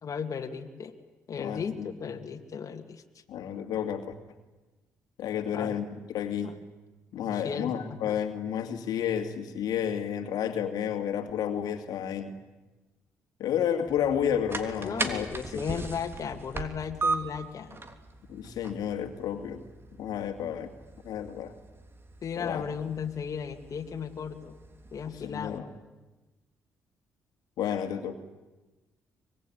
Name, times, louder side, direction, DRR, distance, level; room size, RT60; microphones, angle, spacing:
voice 1, 0.0-0.9 1.3-3.0 5.5-5.8 6.4-6.6 7.3-7.7 8.1-8.2 14.8-17.8 22.2-24.6 24.9-25.7, left 6 dB, 55° left, 4 dB, 2.3 m, -35 dB
voice 2, 1.4-1.9 3.3-4.1 5.2-6.5 7.1-12.3 13.4-15.3 15.5-15.6 18.3-19.6 20.0-20.7 21.0-21.5 22.4-22.6 25.2-25.7 27.6-28.2, left 9 dB, 75° left, 6 dB, 2.4 m, -31 dB
sound 1, 13.9-25.6, right 3 dB, 35° right, 3.3 m, -39 dB
24.5 x 22.0 x 10.0 m, 1.2 s
supercardioid pair, 55°, 7 cm